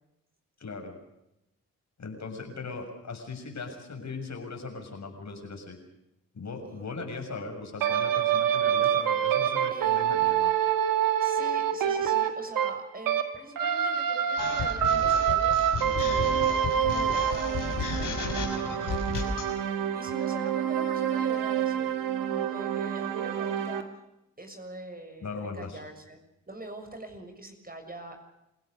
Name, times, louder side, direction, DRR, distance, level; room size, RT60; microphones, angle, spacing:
voice 1, 0.6-1.0 2.0-5.8 6.3-10.5 25.2-25.8, left 4 dB, 55° left, 3 dB, 7.0 m, -39 dB
sound 1, 7.8-13.3 13.6-23.8, right 9 dB, 80° right, 1.9 m, -27 dB
voice 2, 9.7-10.1 11.2-23.9 24.4-26.2 26.5-28.2, right 1 dB, 25° right, 5 dB, 6.7 m, -43 dB
sound 2, 14.4-19.5, left 5 dB, 70° left, 6.2 m, -33 dB
28.0 x 16.5 x 6.7 m, 0.87 s
supercardioid pair, 40°, 33 cm